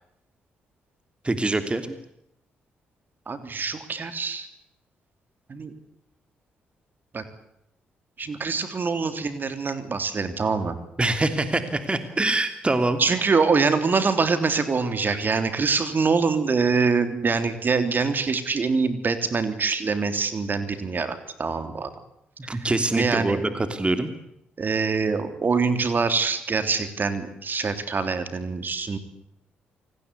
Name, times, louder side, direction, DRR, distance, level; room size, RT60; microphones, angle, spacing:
voice 1, 1.2-1.9 11.0-13.0 22.5-24.1, right 2 dB, 25° right, 9 dB, 3.0 m, -24 dB
voice 2, 3.3-4.5 5.5-5.7 7.1-7.2 8.2-10.7 13.0-21.9 22.9-23.4 24.6-29.0, right 4 dB, 45° right, 9 dB, 3.4 m, -24 dB
28.0 x 19.5 x 8.4 m, 0.79 s
hypercardioid pair, 45°, 5 cm